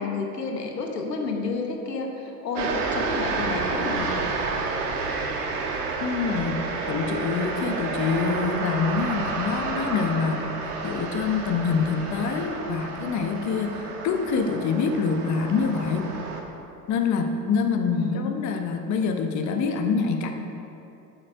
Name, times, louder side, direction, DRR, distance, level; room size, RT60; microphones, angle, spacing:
voice 1, 0.0-4.1 17.9-18.3, left 4 dB, 90° left, 3 dB, 1.1 m, -30 dB
sound 1, 2.5-16.4, right 4 dB, 70° right, 1.3 m, -30 dB
voice 2, 6.0-10.5 10.8-16.1 16.9-20.3, left 5 dB, 35° left, 5 dB, 0.9 m, -26 dB
8.4 x 7.7 x 5.1 m, 2.7 s
figure-of-eight pair, 70°, 47 cm